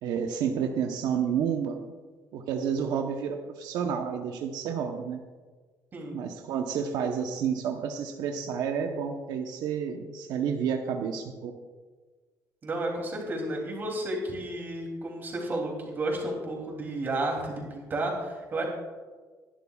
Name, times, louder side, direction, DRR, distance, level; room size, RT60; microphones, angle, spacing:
voice 1, 0.0-1.8 2.3-5.2 6.1-11.5, right 7 dB, 85° right, 4 dB, 1.0 m, -30 dB
voice 2, 12.6-18.6, right 1 dB, 30° right, 0 dB, 3.0 m, -32 dB
21.0 x 11.5 x 2.4 m, 1.4 s
cardioid pair, 170°, 7 cm